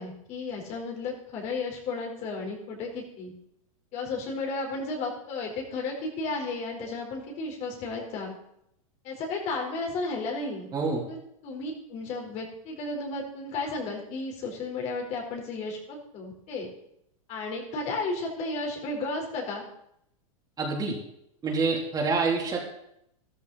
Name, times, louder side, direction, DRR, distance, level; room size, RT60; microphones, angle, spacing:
voice 1, 0.0-3.3 3.9-8.3 9.0-10.7 11.1-11.2 11.4-16.7 17.3-19.6, left 3 dB, 40° left, 0 dB, 4.3 m, -33 dB
voice 2, 10.7-11.0 20.6-21.0 21.4-22.6, right 4 dB, 20° right, -2 dB, 3.5 m, -26 dB
13.5 x 13.0 x 4.2 m, 0.77 s
hypercardioid pair, 125°, 18 cm